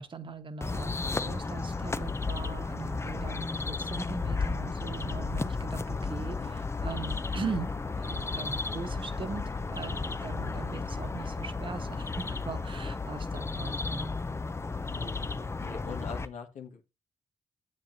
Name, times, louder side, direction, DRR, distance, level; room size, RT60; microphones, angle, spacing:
voice 1, 0.0-14.1, right 5 dB, 40° right, 1.3 m, -40 dB
sound 1, 0.6-16.3, left 4 dB, 20° left, 0.6 m, -33 dB
voice 2, 6.4-6.7 14.9-16.8, left 5 dB, 70° left, 1.7 m, -43 dB
9.9 x 7.8 x 2.7 m
cardioid pair, 80°, 13 cm